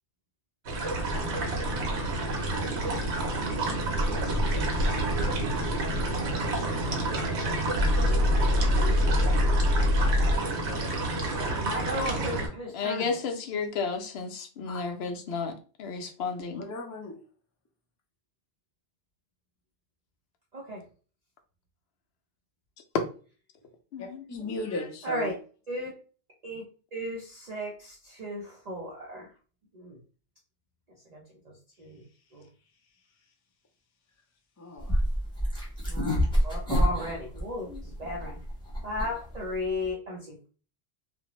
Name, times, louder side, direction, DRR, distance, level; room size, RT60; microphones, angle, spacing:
sound 1, 0.7-12.5, right 2 dB, 85° right, 1.0 m, -29 dB
voice 1, 6.7-7.1 12.7-15.5 15.8-16.6 23.9-24.2 37.7-37.8, left 5 dB, 75° left, 4 dB, 0.8 m, -33 dB
sound 2, 7.8-10.4, left 1 dB, 45° left, 0.9 m, -23 dB
voice 2, 8.0-9.1 11.6-13.2 20.5-20.8 25.0-25.3 25.7-25.9 26.4-26.6 26.9-29.3 29.7-30.0 31.1-31.5 31.8-32.0 32.3-32.5 35.9-38.4 38.8-40.5, left 1 dB, 45° right, -3 dB, 0.6 m, -35 dB
voice 3, 16.5-17.2 24.0-25.3 34.6-35.0, left 2 dB, 30° left, 1 dB, 0.3 m, -36 dB
sound 3, 34.8-39.9, equal, 5° left, 0.8 m, -28 dB
2.5 x 2.1 x 2.9 m, 0.38 s
omnidirectional pair, 1.1 m